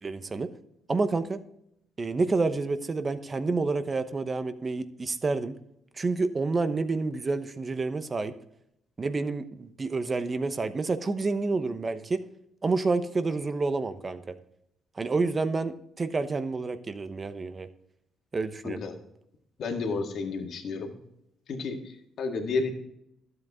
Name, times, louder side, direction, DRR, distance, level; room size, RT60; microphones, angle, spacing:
voice 1, 0.0-0.5 0.9-1.4 2.0-5.5 5.9-8.3 9.0-12.2 12.6-14.3 15.0-17.7 18.3-18.8, right 3 dB, 30° right, 10 dB, 1.0 m, -29 dB
voice 2, 18.6-19.0 19.6-20.9 21.5-22.7, left 4 dB, 65° left, 2 dB, 1.9 m, -31 dB
12.0 x 7.9 x 3.7 m, 0.77 s
cardioid pair, 90°, 0 cm